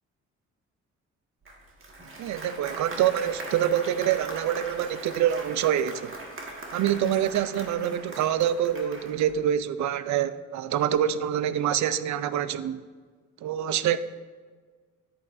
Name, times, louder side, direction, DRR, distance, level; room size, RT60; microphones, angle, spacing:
Applause, 1.4-9.4, right 2 dB, 45° right, 1.8 m, -40 dB
voice 1, 2.2-6.1 6.7-12.8 13.4-14.0, right 10 dB, 70° right, 0.5 m, -26 dB
10.5 x 8.8 x 2.6 m
cardioid pair, 90°, 30 cm